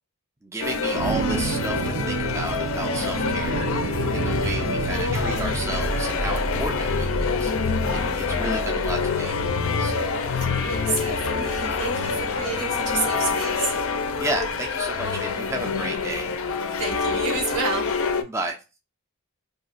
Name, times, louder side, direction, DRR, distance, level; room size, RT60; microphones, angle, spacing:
voice 1, 0.4-9.4 9.8-10.2 11.1-11.2 14.2-16.3 18.2-18.6, right 2 dB, 10° right, 0.4 m, -32 dB
sound 1, 0.6-18.2, left 5 dB, 60° left, 0.4 m, -26 dB
sound 2, 0.9-14.6, right 3 dB, 70° right, 0.5 m, -32 dB
voice 2, 7.8-8.2 10.6-13.7 16.7-18.2, right 4 dB, 90° right, 1.1 m, -30 dB
2.6 x 2.1 x 3.9 m
head